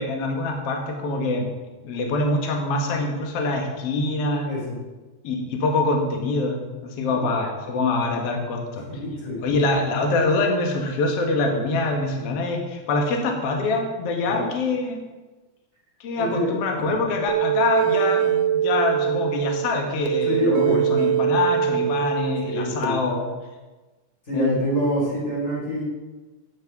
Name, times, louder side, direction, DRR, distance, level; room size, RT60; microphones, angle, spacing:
voice 1, 0.0-1.5 1.8-4.5 5.2-6.6 7.0-8.8 9.4-15.0 16.0-23.2 24.3-24.5, left 2 dB, 50° left, 2 dB, 2.0 m, -24 dB
voice 2, 4.4-4.8 6.9-7.2 8.9-9.4 14.3-14.5 16.1-16.5 16.8-17.0 20.2-21.2 22.4-23.0 24.3-25.8, equal, 20° left, -6 dB, 3.9 m, -26 dB
sound 1, 17.3-22.9, right 10 dB, 85° right, 1.8 m, -23 dB
9.5 x 8.5 x 6.0 m, 1.2 s
omnidirectional pair, 4.5 m